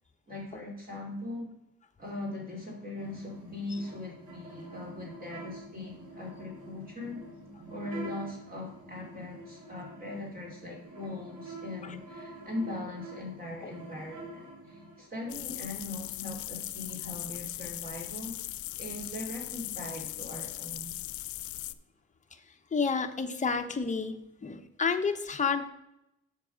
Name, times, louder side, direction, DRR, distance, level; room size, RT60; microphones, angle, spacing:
voice 1, 0.3-1.5 2.0-7.2 7.7-20.9, left 2 dB, 30° right, -2 dB, 2.6 m, -40 dB
sound 1, 3.0-15.1, right 2 dB, 85° right, 2.3 m, -46 dB
sound 2, 15.3-21.7, left 15 dB, 75° left, 0.5 m, -39 dB
voice 2, 22.7-24.1 24.4-25.7, left 5 dB, 25° left, 6 dB, 0.9 m, -30 dB
7.5 x 5.6 x 5.0 m, 0.84 s
cardioid pair, 90°, 30 cm